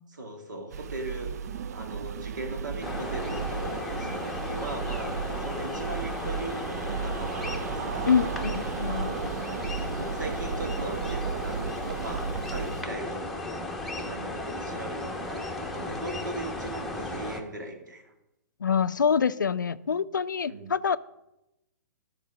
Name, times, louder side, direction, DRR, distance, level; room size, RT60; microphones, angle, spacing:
voice 1, 0.2-1.3 1.7-8.3 9.9-13.2 13.5-18.1 20.5-20.7, right 2 dB, 70° right, 3 dB, 1.9 m, -39 dB
sound 1, 0.7-12.8, right 6 dB, 55° right, 0.5 m, -34 dB
sound 2, 2.8-17.4, left 2 dB, ahead, 1.0 m, -35 dB
voice 2, 8.1-9.2 18.6-21.0, left 6 dB, 80° left, 16 dB, 0.4 m, -26 dB
12.5 x 4.5 x 6.1 m, 0.92 s
figure-of-eight pair, 120°, 10 cm